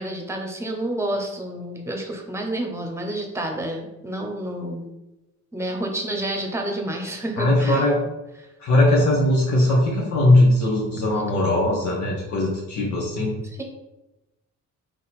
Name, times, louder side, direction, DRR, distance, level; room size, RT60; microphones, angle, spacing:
voice 1, 0.0-4.9 5.5-7.8 8.4-8.5 13.6-13.7, right 1 dB, 10° right, 2 dB, 1.0 m, -29 dB
voice 2, 7.4-8.0 8.6-13.4, left 1 dB, 70° left, -3 dB, 1.2 m, -19 dB
3.9 x 3.1 x 4.2 m, 0.99 s
cardioid pair, 90°, 30 cm